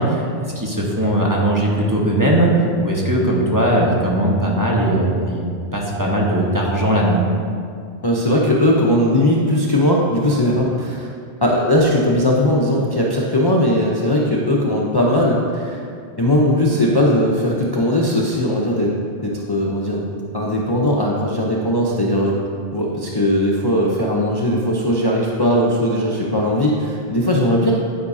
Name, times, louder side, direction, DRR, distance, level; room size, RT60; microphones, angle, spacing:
voice 1, 0.0-5.5 5.7-7.3, right 1 dB, 20° right, -3 dB, 1.2 m, -19 dB
voice 2, 8.0-11.1 11.4-15.8 16.2-18.9 19.2-22.4 22.7-27.7, left 1 dB, 25° left, -4 dB, 0.7 m, -18 dB
10.0 x 9.6 x 2.7 m, 2.2 s
omnidirectional pair, 1.1 m